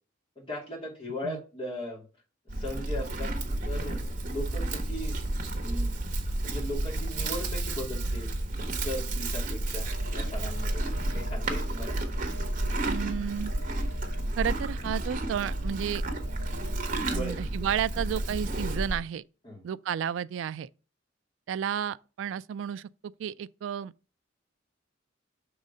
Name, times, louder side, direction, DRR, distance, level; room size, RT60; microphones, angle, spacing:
voice 1, 0.4-2.0 2.5-3.3 3.6-5.2 5.6-6.0 6.4-8.3 8.7-10.8 11.1-11.9 17.0-17.5 19.4-19.6, left 1 dB, 30° left, 2.4 m, -38 dB
Livestock farm animals working animals, 2.5-19.0, right 1 dB, 45° right, 1.0 m, -31 dB
sound 1, 9.8-16.9, left 2 dB, 70° left, 0.8 m, -50 dB
voice 2, 12.8-13.5 14.4-16.0 17.1-19.2 19.6-20.7 21.5-23.9, right 8 dB, 85° right, 0.3 m, -32 dB
6.2 x 3.8 x 5.4 m
head